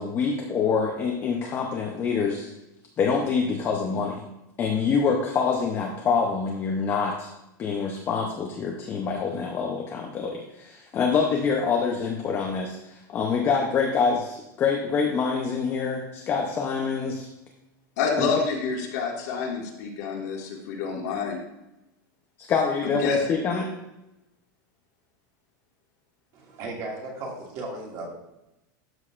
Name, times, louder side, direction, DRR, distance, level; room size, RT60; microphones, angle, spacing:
voice 1, 0.0-2.5 3.0-4.2 4.6-7.3 7.6-17.3 18.2-18.3 22.4-23.7, left 5 dB, 20° left, 0 dB, 0.7 m, -26 dB
voice 2, 18.0-21.4 22.8-23.2, left 5 dB, 55° left, -1 dB, 1.9 m, -28 dB
voice 3, 26.3-28.1, right 2 dB, 35° right, -2 dB, 2.2 m, -36 dB
12.5 x 6.4 x 2.5 m, 0.90 s
supercardioid pair, 175°, 11 cm